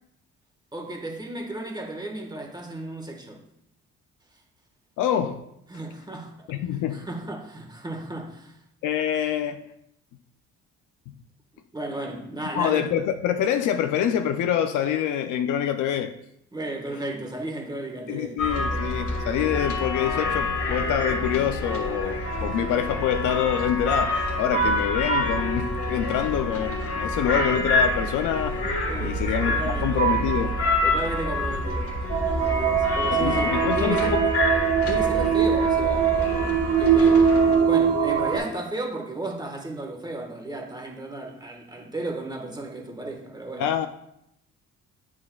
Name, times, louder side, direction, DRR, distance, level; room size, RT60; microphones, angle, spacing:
voice 1, 0.7-3.4 5.7-8.6 11.7-12.9 16.5-18.4 18.7-18.8 26.1-26.3 28.9-30.0 30.8-31.9 32.2-33.5 33.7-34.2 34.8-37.4 37.6-43.7, right 2 dB, 15° right, 1 dB, 1.4 m, -34 dB
voice 2, 5.0-5.4 6.5-7.1 8.8-9.6 11.1-11.2 12.5-16.1 18.1-30.6 33.1-34.3 34.8-34.9 43.6-43.9, left 9 dB, 85° left, 8 dB, 0.5 m, -26 dB
sound 1, 18.4-37.6, left 1 dB, 50° left, 1.5 m, -27 dB
sound 2, 32.1-38.4, right 7 dB, 50° right, 1.2 m, -22 dB
7.4 x 6.1 x 2.3 m, 0.77 s
cardioid pair, 90°, 30 cm